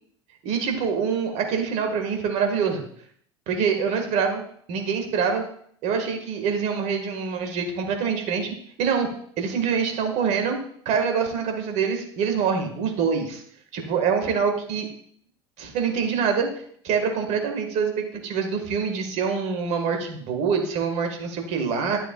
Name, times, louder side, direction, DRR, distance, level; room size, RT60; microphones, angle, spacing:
voice 1, 0.4-2.8 3.5-4.4 4.7-5.4 5.8-9.1 9.4-10.6 10.8-13.4 13.7-14.9 15.6-16.5 16.8-22.1, right 6 dB, 50° right, 4 dB, 1.7 m, -25 dB
11.0 x 6.7 x 2.3 m, 0.62 s
figure-of-eight pair, 70°, 14 cm